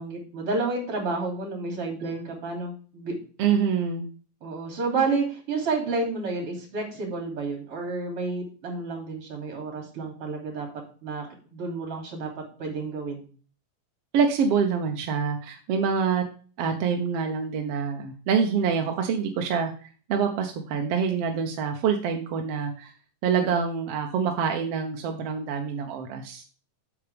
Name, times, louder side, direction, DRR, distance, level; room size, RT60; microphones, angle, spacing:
voice 1, 0.0-3.2 4.4-10.7 11.0-12.3 12.6-13.2 23.4-23.6, right 3 dB, 45° right, 1 dB, 3.7 m, -30 dB
voice 2, 3.4-4.1 14.1-16.2 16.6-22.9 23.2-26.4, right 6 dB, 70° right, 3 dB, 1.6 m, -26 dB
8.3 x 7.0 x 3.4 m, 0.40 s
omnidirectional pair, 3.5 m